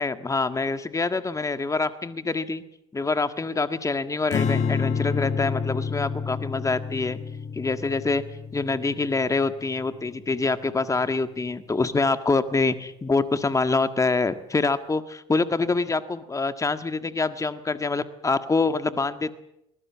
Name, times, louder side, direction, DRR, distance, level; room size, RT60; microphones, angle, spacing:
voice 1, 0.0-2.6 2.9-7.2 7.5-8.2 8.5-19.3, left 3 dB, 20° left, 10 dB, 1.7 m, -25 dB
Strum, 4.3-10.7, left 5 dB, 50° left, 2.2 m, -29 dB
23.0 x 20.0 x 7.5 m, 0.84 s
hypercardioid pair, 65°, 16 cm